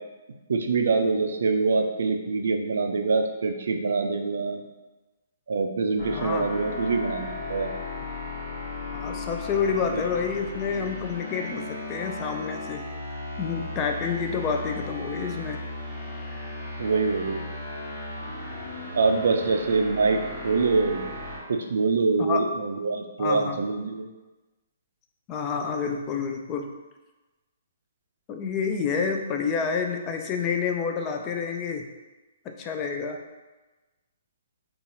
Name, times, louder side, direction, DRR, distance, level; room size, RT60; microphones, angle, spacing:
voice 1, 0.5-4.6 5.5-7.7 9.9-10.0 16.8-17.4 18.9-21.1 21.5-24.1, right 4 dB, 65° right, 5 dB, 0.4 m, -25 dB
sound 1, 6.0-21.4, left 2 dB, 55° left, 1.3 m, -36 dB
voice 2, 6.1-6.5 8.9-12.9 13.4-15.6 22.2-22.4 23.2-23.6 25.3-26.7 28.3-31.8 32.6-33.2, left 6 dB, 30° left, 4 dB, 0.4 m, -28 dB
3.9 x 2.4 x 2.8 m, 1.1 s
figure-of-eight pair, 125°, 0 cm